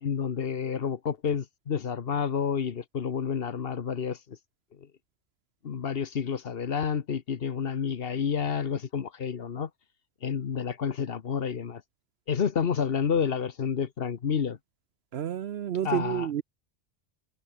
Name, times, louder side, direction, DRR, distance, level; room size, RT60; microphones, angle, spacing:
voice 1, 0.0-4.4 5.6-9.7 10.2-11.8 12.3-14.6 15.8-16.3, left 7 dB, 55° left, 1.1 m, -29 dB
voice 2, 15.1-16.4, right 10 dB, 65° right, 0.9 m, -30 dB
omnidirectional pair, 1.2 m